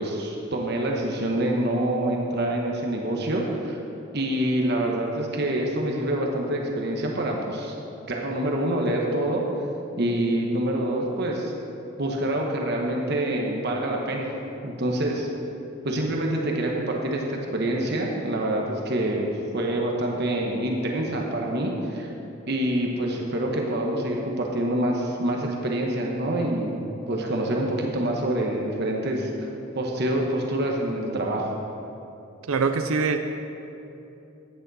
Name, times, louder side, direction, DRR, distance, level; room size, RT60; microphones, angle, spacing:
voice 1, 0.0-3.8 4.1-7.7 8.1-9.4 10.0-11.5 12.0-14.3 14.6-15.3 15.8-22.1 22.5-26.8 27.1-29.5 29.7-31.5, right 1 dB, 50° right, 0 dB, 1.2 m, -26 dB
voice 2, 32.5-33.2, right 4 dB, 70° right, 7 dB, 0.5 m, -23 dB
14.0 x 9.3 x 4.1 m, 2.9 s
head